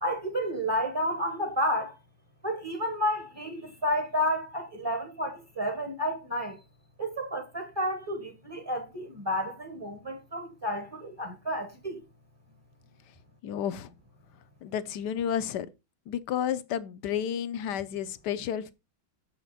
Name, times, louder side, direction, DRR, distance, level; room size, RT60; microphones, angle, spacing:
voice 1, 0.0-1.9 2.4-6.6 7.0-12.0, equal, 20° right, 0.7 m, -31 dB
voice 2, 13.4-13.9 14.6-15.7 16.1-18.7, left 9 dB, 70° left, 1.1 m, -31 dB
6.9 x 5.8 x 4.0 m
omnidirectional pair, 2.2 m